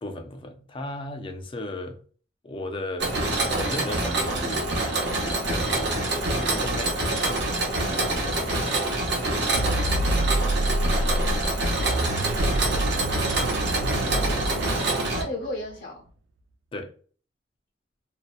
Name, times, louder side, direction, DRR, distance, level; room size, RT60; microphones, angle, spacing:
voice 1, 0.0-2.0 2.4-3.2 3.5-4.7 5.3-7.6 8.1-8.9 16.7-16.9, left 1 dB, 30° left, 0.4 m, -36 dB
Mechanisms, 3.0-15.2, right 2 dB, 65° right, 0.7 m, -26 dB
sound 1, 9.5-15.7, right 1 dB, 90° right, 0.3 m, -27 dB
voice 2, 13.8-16.1, left 1 dB, 60° left, 0.8 m, -36 dB
2.7 x 2.1 x 2.2 m
head